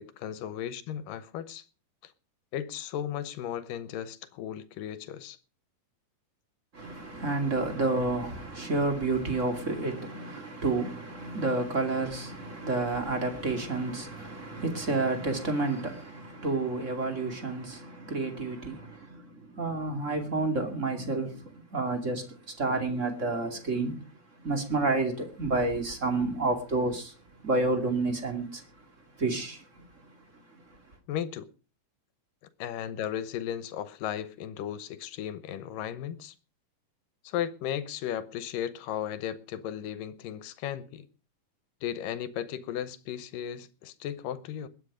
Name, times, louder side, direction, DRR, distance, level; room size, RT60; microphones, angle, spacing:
voice 1, 0.0-1.7 2.0-2.1 2.5-5.4 31.1-31.5 32.6-36.3 37.2-41.1 41.8-44.7, left 10 dB, 85° left, 2.7 m, -35 dB
voice 2, 6.7-24.1 24.4-27.1 27.4-28.6 29.2-30.1 30.5-30.6, right 3 dB, 25° right, 2.3 m, -30 dB
21.0 x 8.9 x 5.0 m
omnidirectional pair, 3.8 m